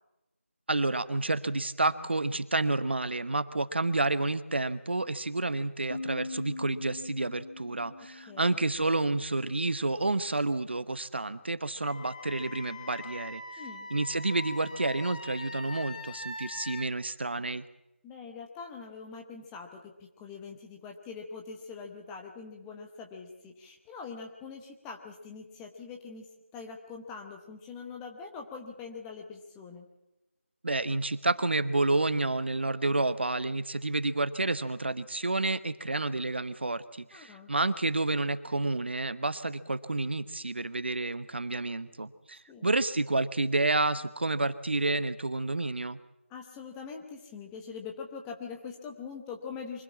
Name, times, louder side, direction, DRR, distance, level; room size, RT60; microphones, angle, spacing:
voice 1, 0.7-13.4 13.9-17.6 30.6-46.0, right 2 dB, 55° right, 14 dB, 1.1 m, -30 dB
sound 1, 5.9-9.5, left 2 dB, 75° left, 1.5 m, -42 dB
voice 2, 8.3-8.6 13.6-13.9 18.0-29.9 37.1-37.5 42.5-42.7 46.3-49.8, left 5 dB, 5° left, 2 dB, 0.8 m, -43 dB
Wind instrument woodwind instrument, 11.8-16.9, left 3 dB, 35° left, 1.4 m, -42 dB
24.0 x 16.5 x 7.4 m, 0.94 s
figure-of-eight pair, 165°, 7 cm